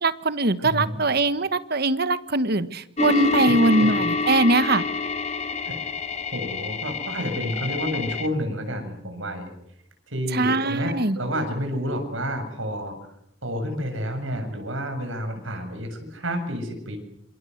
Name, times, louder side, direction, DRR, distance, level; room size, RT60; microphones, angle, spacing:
voice 1, 0.0-4.8 10.3-11.2, right 2 dB, 50° right, 13 dB, 1.4 m, -22 dB
voice 2, 0.6-1.0 3.6-3.9 5.6-5.7 6.3-9.5 10.1-12.9 13.4-17.0, equal, 75° right, 6 dB, 7.8 m, -30 dB
sound 1, 3.0-8.3, left 4 dB, 35° left, 1.7 m, -27 dB
27.5 x 27.0 x 8.1 m, 0.80 s
head